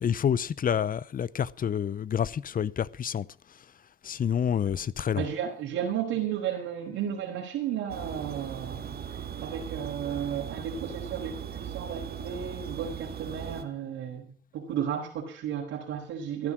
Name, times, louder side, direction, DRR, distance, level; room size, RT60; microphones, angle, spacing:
voice 1, 0.0-3.3 4.0-5.3, left 8 dB, 45° left, 0.8 m, -28 dB
voice 2, 5.2-8.9 9.4-16.5, right 9 dB, 85° right, 4.2 m, -33 dB
sound 1, 7.9-13.6, right 8 dB, 50° right, 2.2 m, -38 dB
14.5 x 11.5 x 6.2 m
cardioid pair, 90°, 20 cm